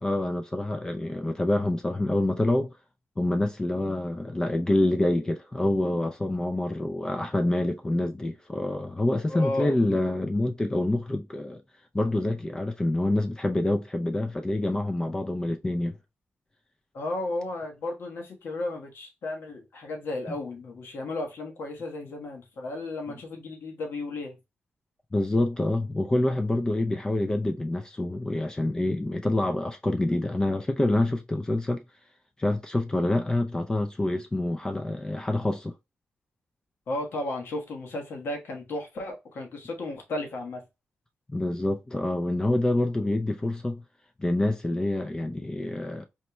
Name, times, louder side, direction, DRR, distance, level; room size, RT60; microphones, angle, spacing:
voice 1, 0.0-2.8 3.2-11.6 11.9-16.0 25.1-31.8 32.4-35.7 41.3-43.8 44.2-46.0, left 1 dB, 20° left, 0.4 m, -26 dB
voice 2, 9.3-9.7 16.9-24.4 36.9-40.6, left 2 dB, 70° left, 1.2 m, -34 dB
4.2 x 2.2 x 3.0 m
cardioid pair, 95°, 4 cm